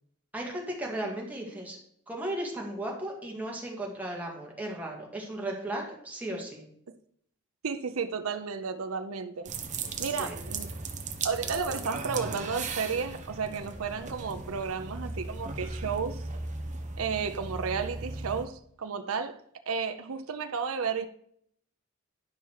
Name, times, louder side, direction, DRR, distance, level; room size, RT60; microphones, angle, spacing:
voice 1, 0.3-1.8 2.1-6.6 10.0-10.4, right 1 dB, 5° right, 2.0 m, -36 dB
voice 2, 7.6-9.5 10.0-10.7 11.2-16.2 17.0-19.4 19.7-21.1, right 5 dB, 75° right, 0.6 m, -32 dB
sound 1, 9.5-18.4, right 3 dB, 35° right, 0.9 m, -37 dB
10.5 x 5.7 x 4.7 m
head